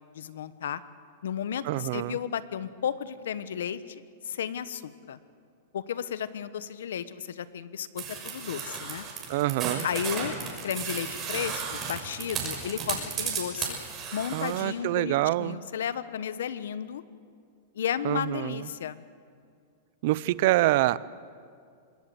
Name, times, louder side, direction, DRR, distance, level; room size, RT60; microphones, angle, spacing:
voice 1, 0.1-0.8 1.2-3.8 4.2-5.2 5.7-9.0 9.8-10.3 10.6-13.8 14.1-17.0 17.7-19.0, left 8 dB, 85° left, 14 dB, 1.1 m, -33 dB
voice 2, 1.6-2.2 9.3-9.9 14.3-15.6 18.0-18.7 20.0-21.0, right 17 dB, 55° right, 19 dB, 0.6 m, -26 dB
sound 1, 8.0-14.6, right 6 dB, 25° right, 6.3 m, -34 dB
26.5 x 20.5 x 7.9 m, 2.3 s
supercardioid pair, 145°, 0 cm